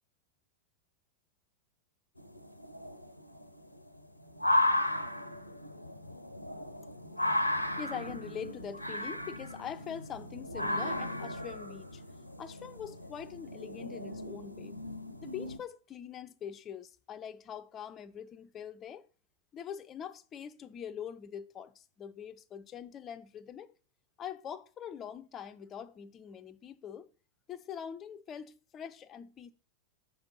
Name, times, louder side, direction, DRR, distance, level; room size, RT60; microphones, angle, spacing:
sound 1, 2.2-15.6, left 1 dB, 90° left, 0.5 m, -35 dB
voice 1, 7.4-12.0 12.4-14.8 15.2-19.1 19.5-23.7 24.2-27.1 27.5-29.5, left 8 dB, 25° left, 0.4 m, -43 dB
5.2 x 4.5 x 5.3 m
figure-of-eight pair, 90°, 0 cm